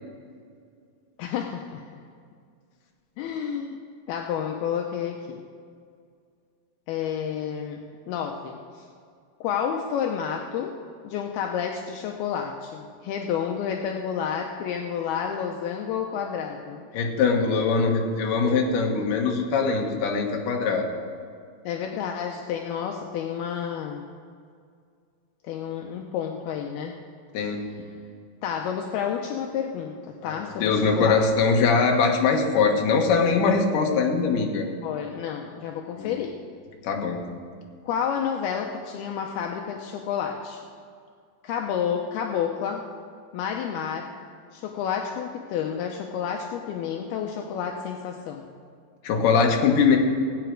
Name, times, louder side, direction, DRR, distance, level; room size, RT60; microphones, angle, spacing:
voice 1, 1.2-1.8 3.2-3.8 4.1-5.4 6.9-8.9 9.4-10.7 11.0-16.8 21.7-24.1 25.4-27.0 27.4-27.5 28.4-30.0 30.2-31.2 34.8-36.3 37.8-40.6 41.4-42.8 43.3-44.1 44.5-48.5, left 8 dB, 80° left, 2 dB, 2.3 m, -30 dB
voice 2, 16.9-20.9 27.3-27.7 30.2-34.7 36.0-36.1 36.8-37.2 49.0-50.0, left 5 dB, 65° left, 1 dB, 2.3 m, -22 dB
18.0 x 8.9 x 4.6 m, 2.2 s
omnidirectional pair, 5.2 m